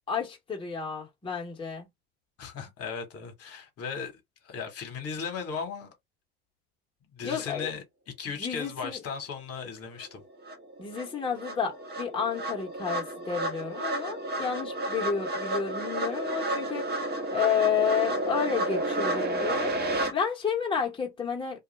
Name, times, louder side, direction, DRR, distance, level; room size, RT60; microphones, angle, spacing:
voice 1, 0.1-1.9 7.2-7.7 8.4-9.0 10.8-21.6, left 7 dB, 15° left, 1.0 m, -31 dB
voice 2, 2.4-4.1 4.4-5.9 7.1-7.8 8.2-10.2, left 6 dB, 45° left, 1.2 m, -36 dB
sound 1, 10.0-10.1 10.5-20.1, right 1 dB, 30° right, 1.1 m, -31 dB
2.4 x 2.3 x 3.1 m
supercardioid pair, 90°, 34 cm